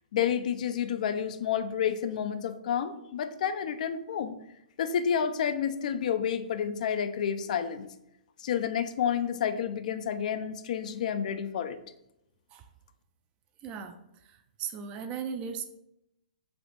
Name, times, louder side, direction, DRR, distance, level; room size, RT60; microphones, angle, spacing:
voice 1, 0.1-4.4 4.8-7.9 8.4-11.8, left 8 dB, 60° left, 10 dB, 0.3 m, -30 dB
voice 2, 13.6-14.0 14.3-15.6, right 7 dB, 25° right, 7 dB, 0.3 m, -37 dB
3.4 x 2.4 x 3.9 m, 0.82 s
hypercardioid pair, 140°, 5 cm